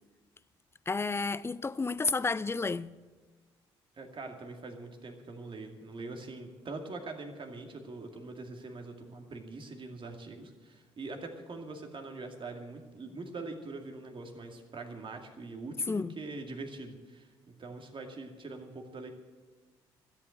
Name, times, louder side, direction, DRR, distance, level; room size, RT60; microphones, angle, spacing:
voice 1, 0.9-2.9 15.9-16.1, left 4 dB, 20° left, 0.5 m, -31 dB
voice 2, 4.0-17.3 17.6-19.1, right 3 dB, 40° right, 2.3 m, -43 dB
13.5 x 8.4 x 7.9 m
hypercardioid pair, 50°, 13 cm